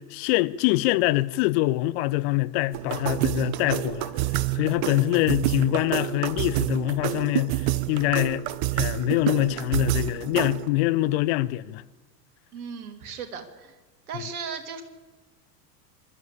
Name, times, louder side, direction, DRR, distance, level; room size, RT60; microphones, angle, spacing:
voice 1, 0.0-4.1 4.5-8.4 8.7-11.8, left 19 dB, 40° left, 0.8 m, -24 dB
sound 1, 2.7-10.7, right 15 dB, 40° right, 1.0 m, -28 dB
voice 2, 12.5-13.7 14.1-14.8, right 6 dB, 60° right, 2.9 m, -36 dB
25.0 x 12.5 x 8.5 m
figure-of-eight pair, 85°, 50 cm